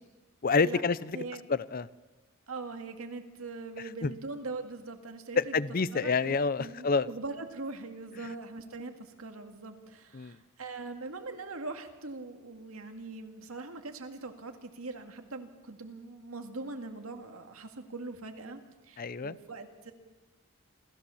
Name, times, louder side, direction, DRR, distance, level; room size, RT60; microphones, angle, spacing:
voice 1, 0.4-1.1 1.5-1.9 4.0-4.1 5.4-7.1 10.1-10.3 19.0-19.4, left 4 dB, 45° left, 18 dB, 0.6 m, -28 dB
voice 2, 2.5-5.5 5.9-19.9, right 3 dB, 90° right, 6 dB, 2.1 m, -42 dB
28.0 x 14.5 x 7.1 m, 1.2 s
head